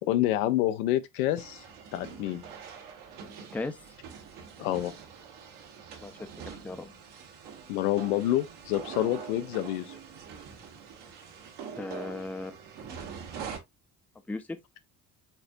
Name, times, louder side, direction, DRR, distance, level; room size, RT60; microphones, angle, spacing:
voice 1, 0.0-1.6 1.9-2.4 4.6-4.9 7.7-10.0, left 14 dB, 65° left, 0.7 m, -28 dB
sound 1, 1.4-13.6, right 6 dB, 55° right, 1.4 m, -44 dB
voice 2, 6.0-6.9 11.8-12.6 14.3-14.6, left 2 dB, 5° left, 0.6 m, -37 dB
4.4 x 4.3 x 2.5 m
figure-of-eight pair, 50°, 49 cm